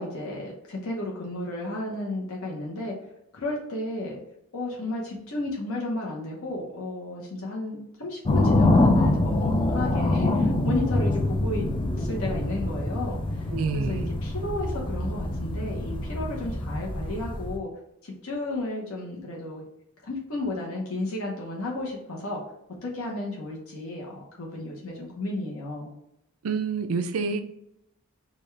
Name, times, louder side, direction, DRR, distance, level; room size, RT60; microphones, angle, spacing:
voice 1, 0.0-2.9 3.3-4.2 4.5-11.7 12.0-13.2 13.7-17.7 18.0-19.6 20.1-22.4 22.8-25.9, left 2 dB, 70° left, -3 dB, 1.0 m, -33 dB
sound 1, 8.3-17.6, left 2 dB, 25° left, 0.5 m, -25 dB
voice 2, 13.5-14.1 26.4-27.4, right 4 dB, 75° right, 8 dB, 0.5 m, -27 dB
5.1 x 2.4 x 3.2 m, 0.80 s
head